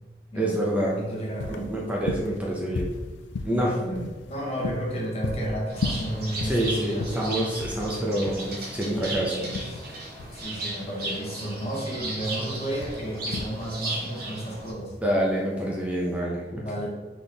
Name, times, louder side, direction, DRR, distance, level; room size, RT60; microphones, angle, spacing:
voice 1, 0.3-0.9 1.5-3.0 3.4-3.8 6.4-9.4 15.0-16.7, right 1 dB, 10° right, -4 dB, 0.6 m, -27 dB
sound 1, 0.5-16.2, left 3 dB, 90° left, 0.4 m, -36 dB
voice 2, 0.9-1.8 3.5-6.6 6.8-7.1 9.2-9.9 10.3-14.9 16.5-16.9, right 1 dB, 35° left, -2 dB, 1.0 m, -32 dB
Bird, 5.7-14.7, right 2 dB, 60° right, 1.1 m, -35 dB
4.2 x 3.7 x 3.3 m, 1.2 s
head